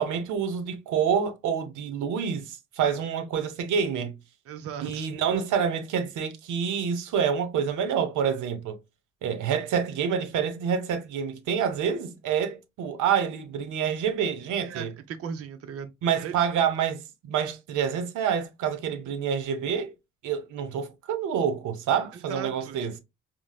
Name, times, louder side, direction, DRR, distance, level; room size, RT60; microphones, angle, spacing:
voice 1, 0.0-4.2 4.8-8.8 9.2-14.9 16.0-19.9 20.2-23.0, right 7 dB, 80° right, 0.8 m, -27 dB
voice 2, 4.5-5.1 14.7-15.9 16.2-16.3 22.1-22.8, right 7 dB, 50° right, 0.5 m, -37 dB
4.6 x 2.0 x 2.2 m
cardioid pair, 90°, 30 cm